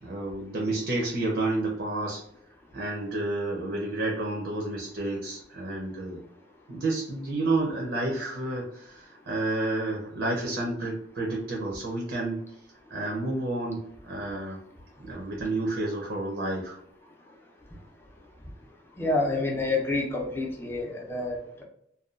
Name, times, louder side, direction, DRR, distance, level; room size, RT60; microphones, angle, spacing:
voice 1, 0.0-2.2 2.7-6.2 6.7-12.4 12.9-14.6 15.0-16.8, right 2 dB, 75° right, -1 dB, 0.6 m, -30 dB
voice 2, 19.0-21.6, left 2 dB, 15° left, -1 dB, 0.5 m, -28 dB
2.7 x 2.2 x 2.4 m, 0.72 s
head